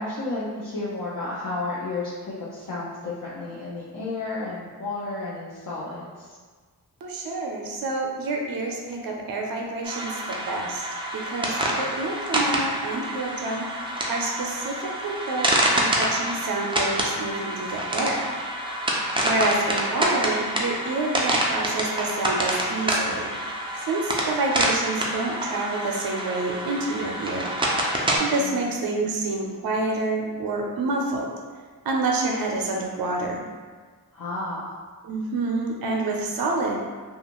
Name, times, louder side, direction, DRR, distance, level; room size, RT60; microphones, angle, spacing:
voice 1, 0.0-6.4 28.4-28.6 29.0-29.1 34.1-34.7, left 2 dB, 55° left, -8 dB, 0.6 m, -32 dB
voice 2, 7.0-10.9 11.1-13.7 14.1-18.3 19.2-23.3 23.7-27.5 28.2-31.3 31.8-33.4 35.0-36.8, right 2 dB, 60° right, 0 dB, 0.5 m, -28 dB
sound 1, 9.8-28.2, right 1 dB, 15° right, 0.4 m, -27 dB
2.5 x 2.3 x 2.9 m, 1.5 s
wide cardioid pair, 90°, 39 cm